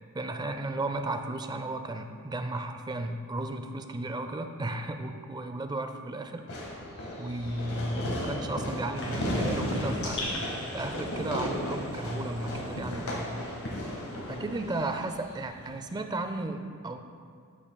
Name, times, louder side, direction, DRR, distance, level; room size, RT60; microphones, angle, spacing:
voice 1, 0.1-6.5 7.2-10.2 10.7-13.3 14.3-17.0, right 2 dB, 20° right, 7 dB, 0.3 m, -34 dB
Fireworks, 6.5-15.5, equal, 85° left, 1.5 m, -35 dB
sound 1, 8.9-14.3 14.6-16.3, left 1 dB, 60° left, 1.6 m, -39 dB
13.5 x 5.5 x 2.2 m, 2.2 s
head